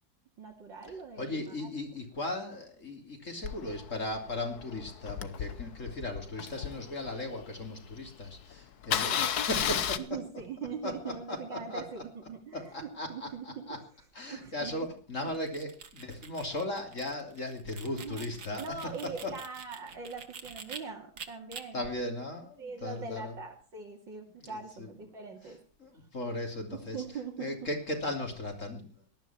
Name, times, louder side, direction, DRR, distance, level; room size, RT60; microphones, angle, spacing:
voice 1, 0.4-1.7 9.1-9.2 10.0-13.7 14.3-14.7 15.2-15.3 17.9-18.3 18.5-21.8 22.6-25.6 26.7-27.5, right 5 dB, 75° right, 0 dB, 3.0 m, -42 dB
voice 2, 1.2-10.0 10.8-12.0 12.5-13.8 14.1-18.6 19.2-19.3 21.7-23.3 24.4-24.9 25.8-27.0 27.4-29.1, left 1 dB, 40° left, 3 dB, 3.5 m, -37 dB
Engine starting, 3.4-7.6 8.1-8.2 8.4-8.5 8.8-10.0, left 9 dB, 60° left, 1.4 m, -33 dB
sound 1, 15.3-20.8 21.2-21.6, right 6 dB, 60° right, 2.2 m, -46 dB
18.5 x 13.0 x 4.4 m, 0.38 s
omnidirectional pair, 2.0 m